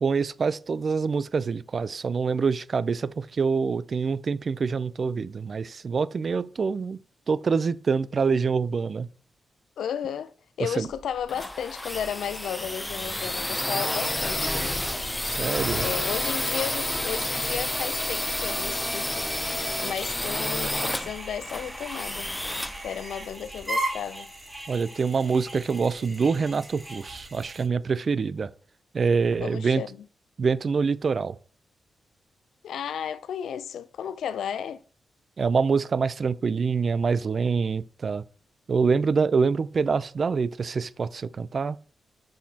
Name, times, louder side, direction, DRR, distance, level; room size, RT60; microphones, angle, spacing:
voice 1, 0.0-7.0 7.3-9.1 10.6-10.9 15.2-15.8 24.7-28.5 28.9-29.8 30.4-31.4 35.4-38.2 38.7-41.8, right 5 dB, 45° right, 0.4 m, -25 dB
voice 2, 9.8-14.9 15.8-19.3 19.8-22.3 22.8-24.3 26.0-26.1 29.4-30.1 32.6-34.8, left 8 dB, 85° left, 0.4 m, -34 dB
sound 1, 10.9-23.6, left 1 dB, 10° left, 0.5 m, -30 dB
sound 2, 14.1-27.7, right 1 dB, 15° right, 3.4 m, -39 dB
sound 3, 16.1-23.3, right 3 dB, 30° right, 2.5 m, -44 dB
6.4 x 5.9 x 2.8 m
cardioid pair, 105°, 0 cm